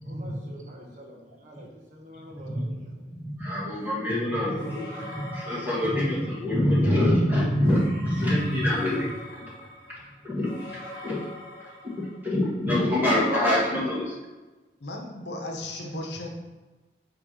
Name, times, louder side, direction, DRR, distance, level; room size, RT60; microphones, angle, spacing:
voice 1, 0.0-3.0 4.9-5.3 15.6-16.0, equal, 45° right, -1 dB, 1.0 m, -43 dB
voice 2, 3.1-4.9 5.3-9.5 10.2-10.8 11.0-11.2 11.6-14.1, left 1 dB, 10° right, -7 dB, 1.6 m, -25 dB
sound 1, 4.5-6.7 7.5-12.4, left 1 dB, 25° left, 1.5 m, -43 dB
voice 3, 13.1-13.8 14.8-16.3, left 1 dB, 80° left, 2 dB, 0.9 m, -36 dB
5.7 x 3.2 x 5.6 m, 1.2 s
head